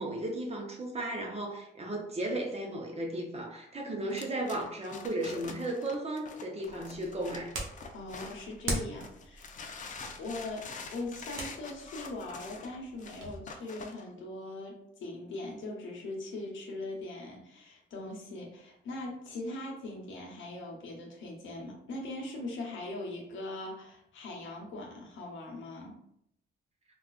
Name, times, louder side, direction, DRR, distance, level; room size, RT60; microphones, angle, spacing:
voice 1, 0.0-7.5, right 1 dB, 30° right, 1 dB, 0.8 m, -35 dB
sound 1, 4.1-8.6 9.0-14.0, left 4 dB, 40° left, 0.5 m, -46 dB
sound 2, 6.6-13.4, right 2 dB, 80° right, 0.8 m, -42 dB
voice 2, 7.9-9.5 10.2-26.0, left 2 dB, 75° left, -1 dB, 1.0 m, -40 dB
3.6 x 2.4 x 2.4 m, 0.74 s
cardioid pair, 90°, 20 cm